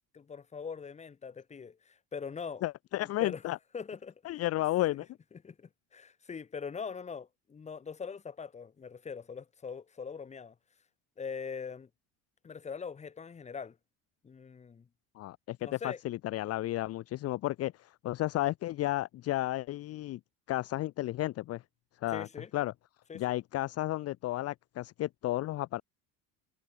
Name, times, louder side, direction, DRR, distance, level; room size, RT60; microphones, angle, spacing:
voice 1, 0.1-2.6 3.0-3.4 3.7-4.1 5.4-10.6 11.2-11.9 12.4-13.8 14.2-14.9 15.6-16.0 22.1-22.5 23.1-23.2, left 6 dB, 20° left, 2.2 m, -42 dB
voice 2, 2.6-3.6 4.2-5.1 15.1-20.2 20.5-21.6 22.0-22.3 22.5-22.7 23.1-25.8, left 16 dB, 45° left, 1.0 m, -33 dB
cardioid pair, 155°, 35 cm